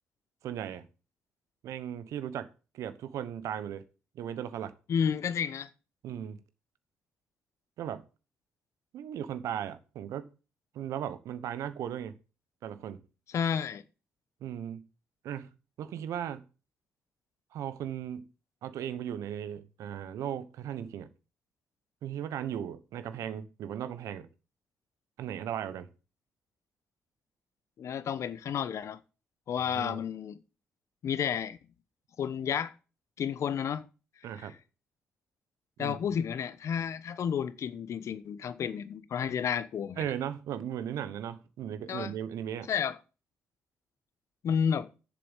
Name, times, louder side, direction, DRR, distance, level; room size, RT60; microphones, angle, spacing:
voice 1, 0.4-0.9 1.6-3.8 4.1-4.7 6.0-6.4 7.8-8.0 8.9-10.3 10.7-12.2 12.6-13.0 14.4-14.8 15.2-15.5 15.8-16.4 17.5-18.3 18.6-21.1 22.0-24.3 25.2-25.9 29.7-30.0 34.2-34.6 35.8-36.1 40.0-42.7, right 9 dB, 75° right, 1.1 m, -37 dB
voice 2, 4.9-5.7 13.3-13.8 27.8-29.0 29.5-30.4 31.0-31.6 32.2-32.7 33.2-33.8 34.4-34.5 35.8-40.1 41.9-42.1 42.7-43.0 44.4-44.9, left 8 dB, 65° left, 0.9 m, -31 dB
7.5 x 7.3 x 8.1 m
supercardioid pair, 55°, 5 cm